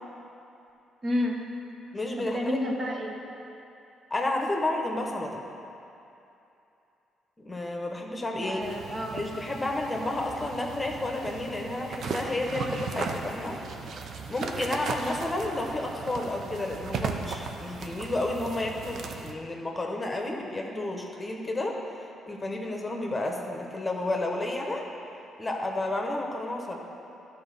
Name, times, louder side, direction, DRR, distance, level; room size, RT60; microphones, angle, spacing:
voice 1, 1.0-1.6 2.2-3.1 8.4-9.2, left 1 dB, 40° right, 0 dB, 1.2 m, -30 dB
voice 2, 1.9-2.6 4.1-5.4 7.4-8.6 9.1-13.6 14.3-21.8 22.3-24.9 25.4-26.8, left 2 dB, 20° left, 1 dB, 1.0 m, -31 dB
sound 1, 8.6-19.3, right 4 dB, 65° right, 0.7 m, -37 dB
12.0 x 4.2 x 6.7 m, 2.8 s
cardioid pair, 90°, 0 cm